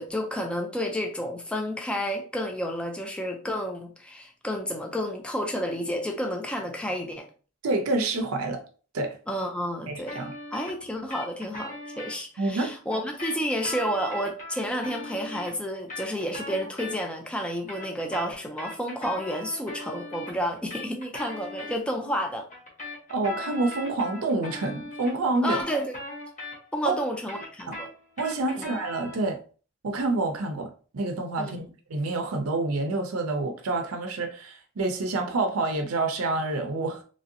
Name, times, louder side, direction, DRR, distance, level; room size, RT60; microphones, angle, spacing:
voice 1, 0.0-7.3 9.3-10.2 10.5-22.5 25.4-25.9 26.7-27.9 28.6-28.7 31.4-31.7, equal, 5° left, 0.4 m, -30 dB
voice 2, 7.6-8.6 8.9-9.2 9.9-10.3 12.4-12.7 23.1-25.6 26.9-27.0 27.7-27.8 28.2-29.4 29.8-37.0, right 2 dB, 80° right, 0.5 m, -28 dB
sound 1, 10.1-12.2 12.9-17.3 17.5-21.8 22.5-26.9 27.1-29.3, left 2 dB, 35° left, 1.0 m, -39 dB
3.1 x 2.6 x 2.6 m
head